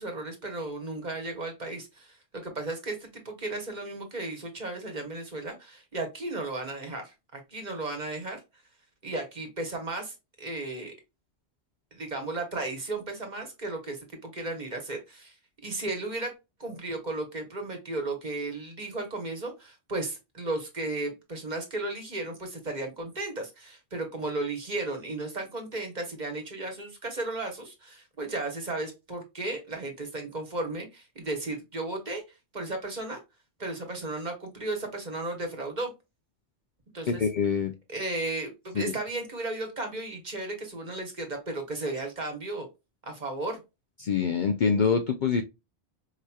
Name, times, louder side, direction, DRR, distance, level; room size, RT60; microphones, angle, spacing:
voice 1, 0.0-8.4 9.0-10.9 11.9-15.3 15.6-16.3 16.6-32.2 32.5-33.2 33.6-35.9 36.9-37.3 37.9-42.7 43.0-43.6, right 2 dB, 40° right, 4 dB, 1.2 m, -34 dB
voice 2, 37.1-37.7 38.8-38.9 44.0-45.4, left 6 dB, 55° left, 6 dB, 0.6 m, -25 dB
4.8 x 2.9 x 2.2 m, 0.24 s
omnidirectional pair, 1.1 m